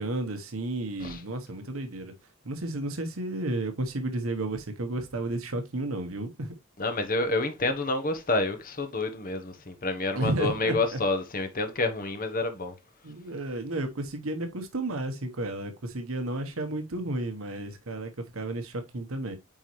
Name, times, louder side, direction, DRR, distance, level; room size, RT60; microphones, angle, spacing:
voice 1, 0.0-2.1 2.4-6.5 10.1-11.0 13.0-19.4, right 2 dB, 80° right, 1.2 m, -32 dB
voice 2, 6.8-12.7, left 2 dB, 45° left, 1.2 m, -28 dB
8.9 x 4.2 x 3.2 m
head